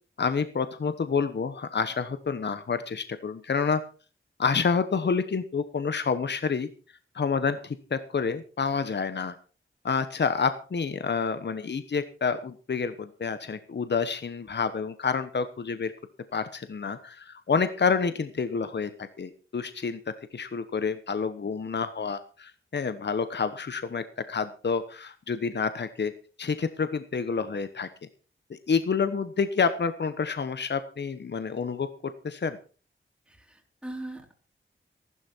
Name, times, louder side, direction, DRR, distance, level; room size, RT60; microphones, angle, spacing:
voice 1, 0.2-3.8 4.4-6.7 7.1-9.4 9.8-15.9 16.3-26.1 26.4-27.9 28.5-32.6, left 5 dB, 60° left, 11 dB, 1.1 m, -28 dB
voice 2, 33.3-34.3, right 1 dB, 5° right, 1 dB, 3.3 m, -40 dB
14.5 x 12.5 x 4.5 m, 0.36 s
wide cardioid pair, 90°, 20 cm